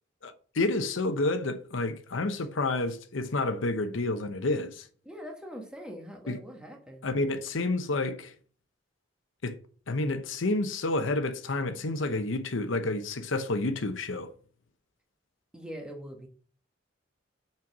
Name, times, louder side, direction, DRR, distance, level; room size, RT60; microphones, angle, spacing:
voice 1, 0.2-4.9 6.3-6.4 7.0-8.3 9.4-9.6 9.9-14.3, left 2 dB, 85° left, 0.8 m, -29 dB
voice 2, 5.0-7.1 15.5-16.3, equal, 5° right, 1.4 m, -42 dB
6.1 x 4.5 x 6.0 m
head